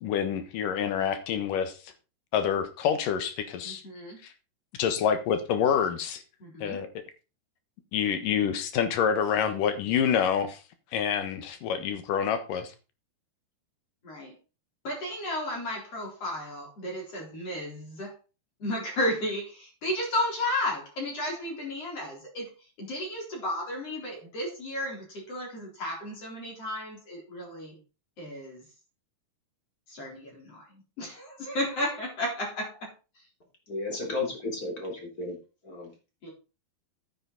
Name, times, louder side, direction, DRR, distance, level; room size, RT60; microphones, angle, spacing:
voice 1, 0.0-1.7 2.3-3.8 4.8-6.2 6.6-6.9 7.9-10.6 10.9-12.7, left 8 dB, 70° left, 10 dB, 2.8 m, -27 dB
voice 2, 3.6-4.2 6.4-6.8 14.0-14.3 14.8-18.1 18.6-27.7 28.2-28.6 29.9-32.9 36.2-36.3, left 1 dB, 40° left, -1 dB, 4.8 m, -33 dB
voice 3, 33.7-35.4 35.6-35.9, left 3 dB, 25° left, 1 dB, 3.6 m, -33 dB
9.9 x 9.5 x 4.0 m, 0.32 s
omnidirectional pair, 4.2 m